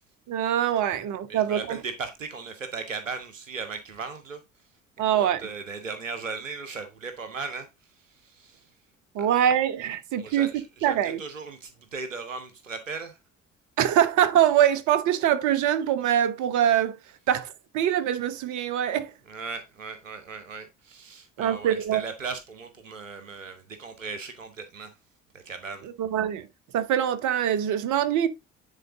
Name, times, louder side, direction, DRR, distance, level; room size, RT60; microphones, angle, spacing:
voice 1, 0.3-1.8 5.0-5.5 9.1-10.5 10.8-11.2 13.8-17.0 17.3-19.1 21.4-22.0 25.8-26.5 26.7-28.3, right 10 dB, 50° right, 1.1 m, -24 dB
voice 2, 1.3-4.4 5.1-7.7 8.2-8.6 10.2-13.2 19.3-24.9 25.3-25.9, right 4 dB, 85° right, 0.9 m, -37 dB
10.0 x 4.1 x 3.6 m
figure-of-eight pair, 50°, 37 cm